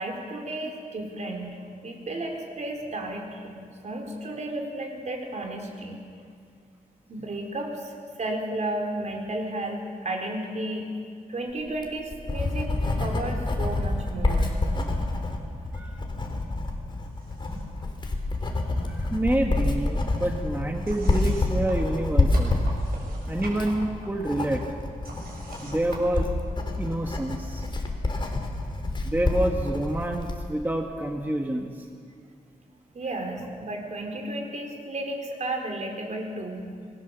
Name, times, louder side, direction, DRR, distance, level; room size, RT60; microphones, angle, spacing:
voice 1, 0.0-6.0 7.1-10.9 11.3-14.6 32.9-36.7, right 1 dB, 50° right, 2 dB, 4.2 m, -33 dB
Writing, 11.7-30.4, left 2 dB, 30° left, 3.6 m, -28 dB
sound 1, 17.0-17.8 18.1-19.1 19.4-26.9, right 2 dB, 90° right, 6.8 m, -45 dB
voice 2, 18.9-22.6 23.3-24.6 25.6-26.3 26.8-27.6 29.0-31.7, right 1 dB, 10° right, 2 dB, 1.7 m, -28 dB
26.5 x 22.0 x 7.1 m, 2.2 s
wide cardioid pair, 115°, 15 cm